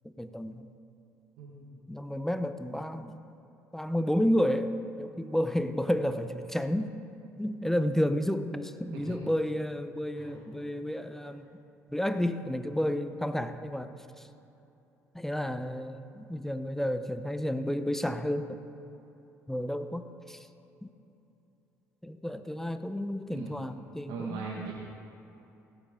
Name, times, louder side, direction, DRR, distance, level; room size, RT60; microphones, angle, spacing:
voice 1, 0.0-0.7 1.9-3.3 3.7-6.9 7.4-11.5 11.9-13.9 14.2-14.3 15.1-18.6 19.5-20.5 20.8-20.9 22.0-24.7, equal, 5° left, 10 dB, 0.8 m, -31 dB
voice 2, 1.4-1.8 8.9-9.2 10.1-10.3 23.3-23.5 24.1-24.7, right 5 dB, 70° right, -2 dB, 1.6 m, -40 dB
16.5 x 12.5 x 3.8 m, 2.9 s
hypercardioid pair, 60°, 8 cm